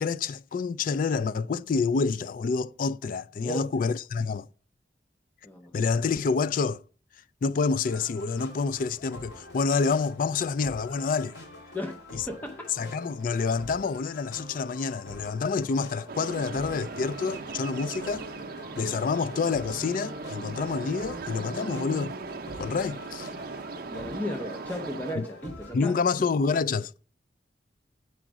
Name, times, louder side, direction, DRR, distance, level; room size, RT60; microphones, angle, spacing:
voice 1, 0.0-4.5 5.7-6.8 7.4-11.3 12.1-12.2 12.8-18.3 18.8-22.1 22.6-23.3 25.2-25.3 25.7-26.9, left 4 dB, 50° left, 0.4 m, -28 dB
voice 2, 3.4-3.9 5.4-5.7 11.7-12.0 12.3-12.7 23.9-26.0, left 1 dB, 10° left, 0.7 m, -35 dB
sound 1, 7.8-25.8, left 1 dB, 80° left, 3.5 m, -46 dB
sound 2, 16.1-25.2, right 4 dB, 60° right, 0.6 m, -38 dB
9.0 x 5.0 x 6.1 m
head